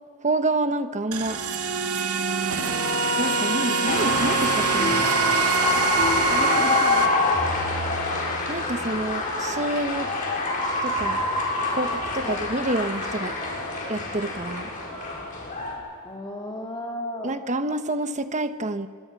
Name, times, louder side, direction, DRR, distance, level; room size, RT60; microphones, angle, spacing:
voice 1, 0.2-1.4 3.2-5.0 8.5-10.1 10.8-11.3 11.7-13.4 13.9-14.7 17.2-18.9, right 2 dB, 35° right, 9 dB, 1.1 m, -28 dB
sound 1, 1.1-7.1, right 5 dB, 90° right, 1.9 m, -25 dB
sound 2, 3.8-15.7, left 2 dB, 40° left, 6.7 m, -26 dB
voice 2, 6.3-7.4 12.2-12.4 16.0-17.4, left 1 dB, 20° left, -1 dB, 2.1 m, -35 dB
29.5 x 26.0 x 6.0 m, 2.2 s
head